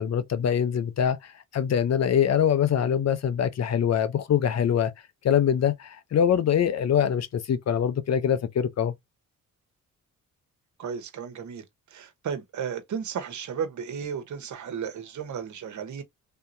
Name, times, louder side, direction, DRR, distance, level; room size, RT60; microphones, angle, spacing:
voice 1, 0.0-4.9 5.2-8.9, left 8 dB, 50° left, 0.6 m, -24 dB
voice 2, 10.8-16.0, right 7 dB, 60° right, 1.0 m, -34 dB
3.4 x 2.8 x 2.6 m
cardioid pair, 70°, 33 cm